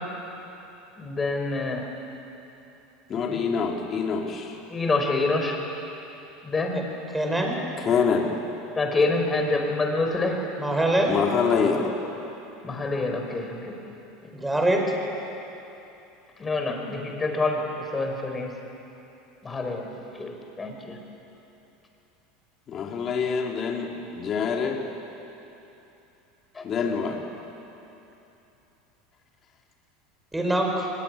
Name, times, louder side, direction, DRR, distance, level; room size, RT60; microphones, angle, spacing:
voice 1, 1.0-1.8 3.3-3.4 4.7-5.6 6.4-6.8 8.8-10.4 12.6-13.7 16.4-17.6 17.9-18.5 19.4-19.9 20.1-20.3 20.6-21.0 26.6-26.7, left 3 dB, 20° left, 2 dB, 4.7 m, -26 dB
voice 2, 3.1-4.5 7.8-8.3 11.1-11.9 22.7-24.8 26.6-27.2, left 6 dB, 35° left, 0 dB, 3.1 m, -25 dB
voice 3, 7.1-7.6 10.6-11.2 14.3-14.9 30.3-30.9, right 1 dB, 5° right, 1 dB, 5.1 m, -24 dB
23.5 x 21.5 x 9.7 m, 3.0 s
supercardioid pair, 120°, 0 cm